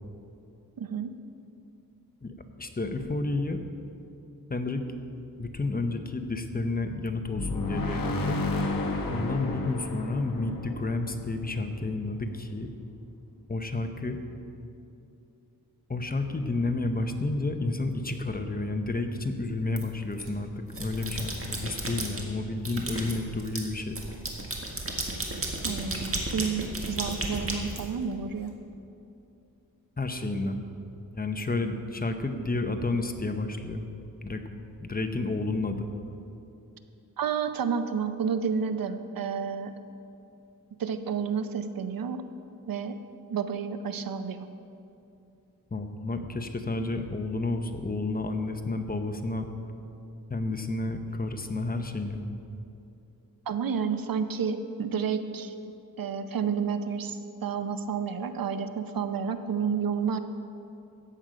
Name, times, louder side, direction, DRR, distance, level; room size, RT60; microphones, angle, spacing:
voice 1, 0.8-1.1 25.6-28.5 37.2-39.7 40.8-42.2 42.7-43.0 43.3-44.5 53.5-55.5 56.0-60.2, right 6 dB, 70° right, 9 dB, 0.7 m, -30 dB
voice 2, 2.2-3.6 4.5-4.8 5.4-8.4 9.1-12.7 13.5-14.2 15.9-24.0 30.0-30.6 31.1-33.9 34.2-34.4 34.8-35.9 45.7-49.5 50.3-52.2, left 2 dB, 25° left, 6 dB, 0.8 m, -31 dB
sound 1, 7.3-12.0, left 2 dB, 70° left, 1.2 m, -31 dB
sound 2, 19.7-20.3 20.7-22.2 22.6-28.4, right 2 dB, 40° right, 1.7 m, -34 dB
14.0 x 8.9 x 5.1 m, 2.8 s
wide cardioid pair, 110°, 36 cm